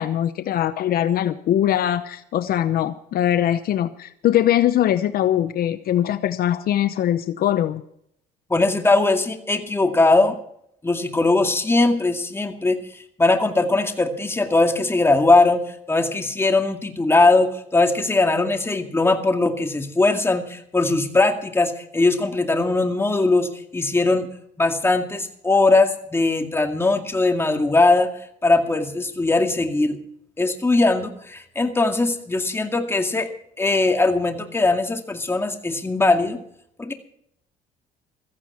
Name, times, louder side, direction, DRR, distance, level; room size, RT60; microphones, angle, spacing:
voice 1, 0.0-7.8, left 11 dB, 60° left, 12 dB, 0.8 m, -21 dB
voice 2, 8.5-10.4 10.8-24.3 24.6-28.1 28.4-30.0 30.4-33.3 33.6-36.4 36.8-36.9, left 2 dB, 15° left, 5 dB, 2.1 m, -20 dB
15.5 x 14.5 x 4.5 m, 0.70 s
cardioid pair, 110°, 17 cm